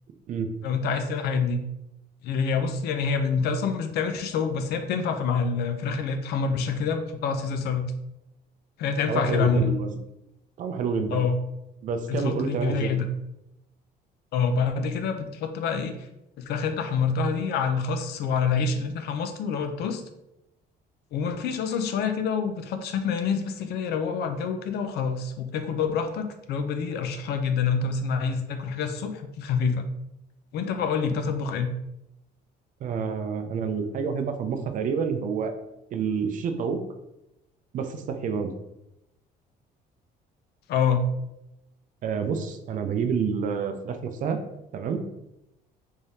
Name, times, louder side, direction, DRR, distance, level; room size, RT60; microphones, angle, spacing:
voice 1, 0.6-1.6 2.2-7.9 8.8-9.8 11.1-11.4 12.1-13.1 14.3-16.0 16.4-20.0 21.1-29.9 30.5-31.7 40.7-41.1, left 5 dB, 70° left, 7 dB, 0.5 m, -27 dB
voice 2, 9.1-10.0 10.6-11.2 11.8-12.9 32.8-35.5 35.9-36.8 37.7-38.6 42.0-44.4 44.7-45.0, right 6 dB, 50° right, 7 dB, 0.5 m, -28 dB
3.5 x 3.4 x 2.7 m, 0.87 s
cardioid pair, 135°, 17 cm